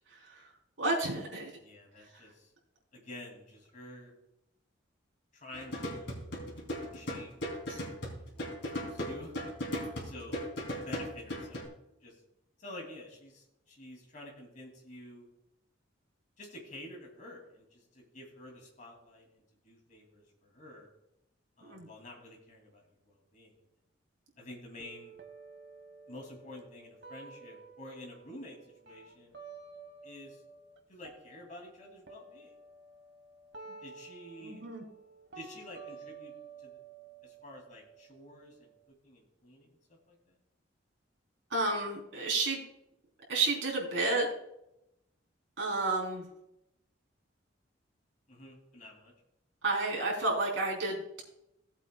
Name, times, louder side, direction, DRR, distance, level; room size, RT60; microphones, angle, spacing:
voice 1, 0.1-0.5 0.8-1.6 2.1-2.2 7.7-7.8 21.6-21.9 33.7-33.8 34.4-34.8 41.5-42.6 43.3-44.3 45.6-46.3 49.6-51.2, right 2 dB, 70° right, -2 dB, 3.3 m, -31 dB
voice 2, 1.6-2.5 2.9-4.1 5.3-6.4 6.9-9.5 10.0-10.4 10.7-11.6 12.0-12.2 12.6-15.3 16.4-20.9 21.6-23.5 24.4-25.1 26.1-29.3 30.0-30.4 30.9-32.5 33.8-34.6 35.3-36.3 36.6-36.7 37.2-38.7 39.0-40.3 48.3-49.1, left 1 dB, 40° left, 0 dB, 2.4 m, -49 dB
sound 1, 5.5-11.6, equal, 60° left, 3.0 m, -38 dB
sound 2, 24.8-30.8 31.0-38.8, right 5 dB, 55° right, 1.1 m, -52 dB
18.0 x 8.1 x 2.2 m, 0.84 s
head